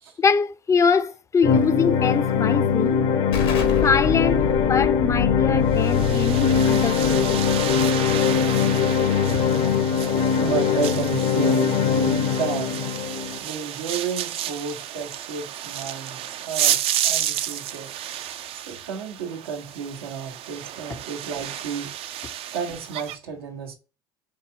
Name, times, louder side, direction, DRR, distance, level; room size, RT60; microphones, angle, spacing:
voice 1, 0.2-3.0 3.8-7.4 9.3-9.4, left 5 dB, 25° left, 0.4 m, -23 dB
sound 1, 1.4-13.4, left 7 dB, 70° left, 0.7 m, -21 dB
Explosion, 3.3-8.8, left 4 dB, 85° left, 1.2 m, -30 dB
sound 2, 5.7-23.2, right 11 dB, 50° right, 0.4 m, -31 dB
voice 2, 9.6-12.9 13.4-17.9 18.5-23.7, right 6 dB, 90° right, 0.9 m, -32 dB
4.6 x 2.7 x 2.7 m
supercardioid pair, 85°, 12 cm